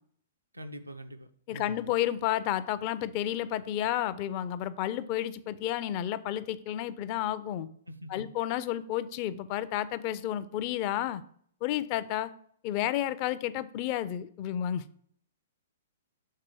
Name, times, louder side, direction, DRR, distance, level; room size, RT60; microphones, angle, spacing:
voice 1, 0.5-1.9 7.9-8.2, equal, 90° right, 0.6 m, -44 dB
voice 2, 1.5-7.7 8.1-11.2 11.6-12.3 12.6-14.8, left 12 dB, 40° left, 0.4 m, -31 dB
6.6 x 3.9 x 6.2 m
figure-of-eight pair, 115°, 0 cm